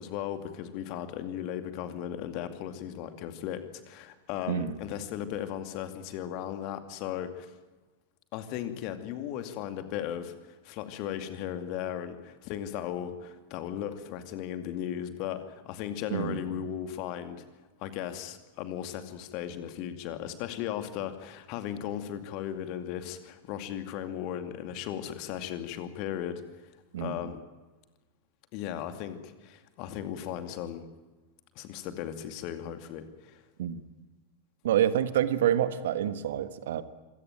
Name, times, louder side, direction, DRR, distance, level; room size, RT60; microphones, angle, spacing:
voice 1, 0.0-7.5 8.3-17.4 17.8-26.4 27.0-27.4 28.5-30.9 31.6-33.4, left 10 dB, 45° left, 9 dB, 2.4 m, -36 dB
voice 2, 4.5-4.8 16.1-16.4 26.9-27.3 33.6-33.8 34.6-36.8, right 10 dB, 60° right, 13 dB, 1.4 m, -27 dB
26.0 x 17.0 x 9.0 m, 1.2 s
figure-of-eight pair, 90°, 0 cm